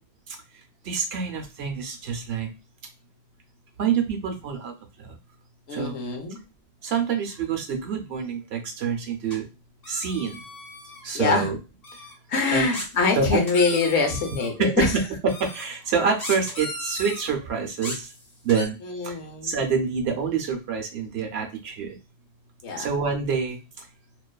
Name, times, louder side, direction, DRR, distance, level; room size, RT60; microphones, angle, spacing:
voice 1, 0.8-2.5 3.8-5.2 5.7-6.0 6.8-9.5 9.9-10.4 11.0-11.6 11.9-12.0 12.5-12.7 13.2-13.3 14.6-14.9 15.2-18.1 18.4-18.8 19.0-19.2 19.4-22.0 22.8-23.9, right 6 dB, 70° right, 3 dB, 0.9 m, -27 dB
voice 2, 5.7-6.4 11.1-11.5 12.3-14.9 18.8-19.6 22.6-22.9, left 4 dB, 80° left, 3 dB, 1.0 m, -24 dB
sound 1, 9.3-9.4 9.8-11.0 11.8-12.1 12.7-14.5 15.3-15.6 16.2-17.3 17.8-18.7, left 1 dB, 35° left, 1.1 m, -36 dB
2.5 x 2.3 x 2.2 m, 0.28 s
omnidirectional pair, 1.1 m